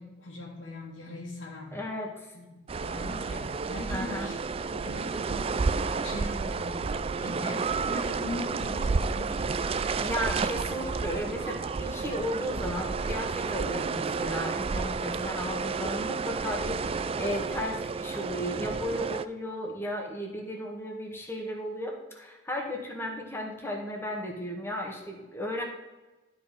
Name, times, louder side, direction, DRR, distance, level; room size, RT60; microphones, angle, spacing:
voice 1, 0.0-1.8 2.3-2.5 2.8-4.3 4.7-6.9 7.2-7.6 7.9-10.0, left 2 dB, 80° left, -4 dB, 2.4 m, -40 dB
voice 2, 1.7-2.3 3.9-4.3 10.0-25.6, left 1 dB, 15° left, 1 dB, 1.6 m, -35 dB
sound 1, 2.7-19.2, right 4 dB, 30° right, 0.3 m, -31 dB
12.0 x 5.1 x 5.2 m, 1.1 s
head